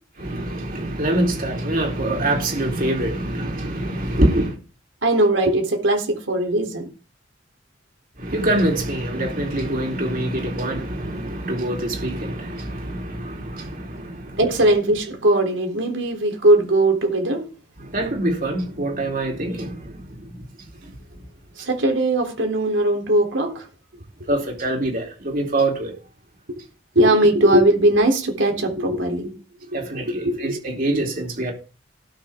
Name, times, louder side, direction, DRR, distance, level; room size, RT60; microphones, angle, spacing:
voice 1, 0.2-4.6 8.2-14.4 17.8-20.4 20.9-21.0 24.3-25.9 29.7-31.5, right 1 dB, 50° right, 3.9 m, -25 dB
voice 2, 5.0-6.9 14.4-17.5 21.6-23.7 27.0-29.3 29.7-30.6, right 1 dB, 85° right, 3.7 m, -19 dB
18.0 x 6.7 x 3.8 m
head